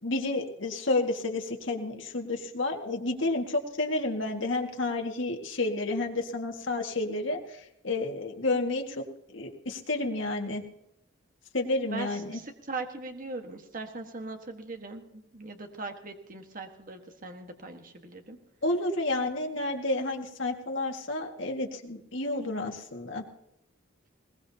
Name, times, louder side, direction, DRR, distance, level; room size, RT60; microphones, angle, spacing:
voice 1, 0.0-9.0 9.3-10.6 11.5-12.4 18.6-23.2, left 2 dB, 70° left, 2 dB, 2.0 m, -30 dB
voice 2, 11.9-18.4, right 3 dB, 45° right, 4 dB, 1.5 m, -40 dB
21.0 x 19.5 x 2.9 m, 0.81 s
head